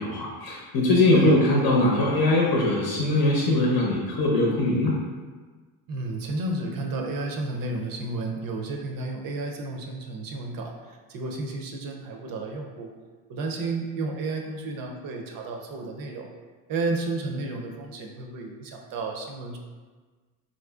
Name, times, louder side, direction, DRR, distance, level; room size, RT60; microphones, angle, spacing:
voice 1, 0.0-5.0, left 2 dB, 45° left, -3 dB, 0.7 m, -21 dB
voice 2, 5.9-12.9 13.3-16.3 16.7-19.6, right 2 dB, 45° right, 2 dB, 0.5 m, -32 dB
4.1 x 2.5 x 2.3 m, 1.4 s
supercardioid pair, 100°, 50 cm